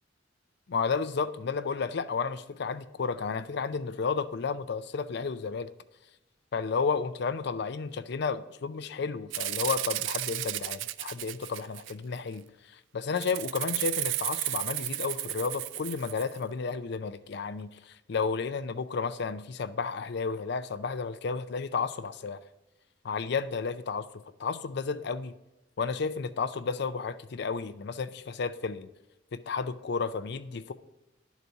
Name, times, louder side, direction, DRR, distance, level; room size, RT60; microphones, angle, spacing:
voice 1, 0.7-5.7 6.5-22.4 23.0-25.3 25.8-28.9 29.3-30.7, left 5 dB, 65° left, 11 dB, 0.5 m, -32 dB
Rattle (instrument), 9.3-12.2 13.2-16.4, right 15 dB, 90° right, 0.3 m, -33 dB
11.5 x 4.1 x 4.6 m, 0.97 s
head